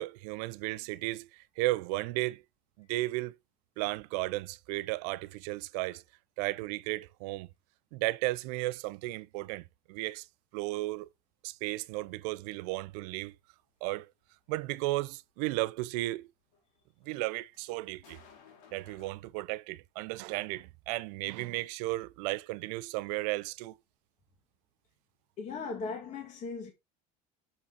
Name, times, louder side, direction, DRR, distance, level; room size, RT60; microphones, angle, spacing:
voice 1, 0.0-2.4 2.8-3.4 3.8-6.0 6.4-7.5 7.9-10.3 10.5-11.1 11.4-13.3 13.8-14.1 14.5-16.3 17.1-18.2 18.7-23.8, right 19 dB, 75° right, 0.5 m, -34 dB
sound 1, 16.5-19.1, left 6 dB, 70° left, 2.6 m, -57 dB
voice 2, 25.4-26.7, left 4 dB, 35° left, 1.8 m, -38 dB
7.1 x 5.3 x 3.9 m
cardioid pair, 135°, 20 cm